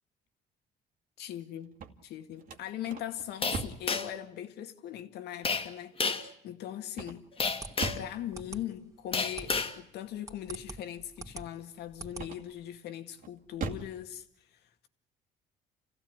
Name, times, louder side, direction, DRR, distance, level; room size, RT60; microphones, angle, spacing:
voice 1, 1.2-1.7 2.0-7.3 7.9-14.9, left 11 dB, 75° left, 2.1 m, -40 dB
sound 1, 1.6-4.0 6.9-8.2 12.1-12.7 13.2-14.0, right 5 dB, 55° right, 2.3 m, -40 dB
sound 2, 3.4-4.2 5.4-5.7 6.0-6.3 7.4-8.1 9.1-9.7, left 4 dB, 30° left, 2.1 m, -30 dB
sound 3, 7.4-12.7, right 3 dB, 20° right, 2.9 m, -45 dB
29.0 x 16.0 x 9.7 m
cardioid pair, 110°, 17 cm